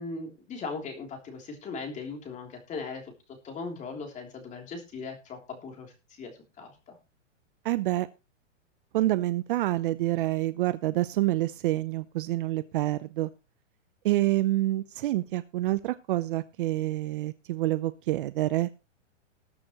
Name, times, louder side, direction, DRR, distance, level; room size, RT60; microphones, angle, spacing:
voice 1, 0.0-3.0 3.4-5.9 6.2-7.0, left 4 dB, 20° left, 3 dB, 3.2 m, -38 dB
voice 2, 7.6-8.1 8.9-13.3 14.0-18.7, right 16 dB, 45° right, 14 dB, 0.7 m, -27 dB
20.0 x 6.8 x 3.0 m, 0.30 s
hypercardioid pair, 150°, 38 cm